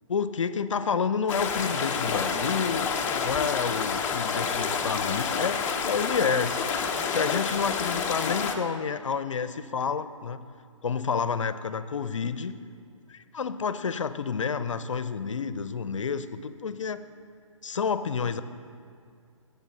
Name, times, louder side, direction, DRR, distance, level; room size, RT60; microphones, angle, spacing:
voice 1, 0.1-2.9 3.2-10.4 10.8-12.6 13.1-17.0 17.6-18.4, left 6 dB, 65° left, 13 dB, 0.6 m, -29 dB
sound 1, 1.3-8.6, left 6 dB, 15° left, 0.7 m, -28 dB
19.0 x 8.1 x 4.1 m, 2.2 s
figure-of-eight pair, 135°, 17 cm